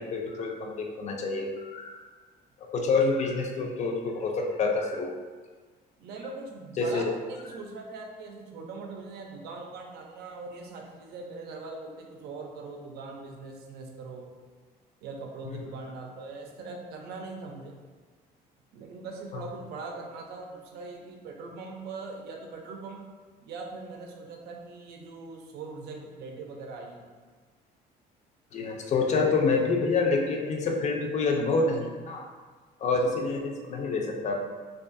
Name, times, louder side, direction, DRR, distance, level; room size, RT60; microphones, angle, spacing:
voice 1, 0.0-2.0 2.7-5.1 6.8-7.0 19.3-19.4 28.5-32.3 32.8-34.4, left 3 dB, 45° left, 2 dB, 0.4 m, -27 dB
voice 2, 6.0-14.3 15.0-17.7 18.7-23.0 23.4-27.0, right 3 dB, 75° right, 1 dB, 0.5 m, -41 dB
2.5 x 2.3 x 2.5 m, 1.4 s
cardioid pair, 110°, 17 cm